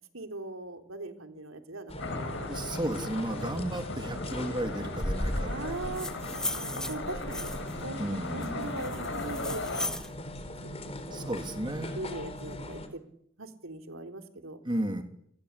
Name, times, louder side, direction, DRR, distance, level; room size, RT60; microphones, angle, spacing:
voice 1, 0.1-2.0 2.3-2.7 5.4-6.1 6.6-7.5 7.8-8.0 8.3-10.0 10.6-11.3 12.0-13.0 13.4-14.6, right 2 dB, 80° right, 6 dB, 3.7 m, -40 dB
sound 1, 1.9-12.9, left 1 dB, 30° left, 3.9 m, -39 dB
sound 2, 2.0-9.9, left 2 dB, 65° left, 7.3 m, -37 dB
voice 2, 2.4-5.7 8.0-8.7 11.1-12.0 14.6-15.0, right 1 dB, 25° right, 5 dB, 3.0 m, -34 dB
sound 3, 5.7-7.8 8.4-10.1, left 1 dB, 5° left, 1.7 m, -37 dB
29.0 x 21.5 x 8.4 m, 0.70 s
head